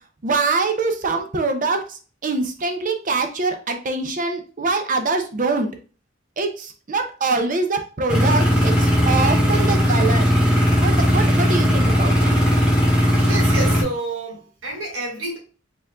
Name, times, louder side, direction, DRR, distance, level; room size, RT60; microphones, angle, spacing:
voice 1, 0.2-5.7 6.4-10.3 10.8-12.3, right 3 dB, 40° right, 0.6 m, -24 dB
sound 1, 8.1-13.8, equal, 5° right, 1.4 m, -17 dB
voice 2, 13.2-15.4, right 2 dB, 80° right, 2.1 m, -29 dB
5.0 x 3.7 x 2.3 m
head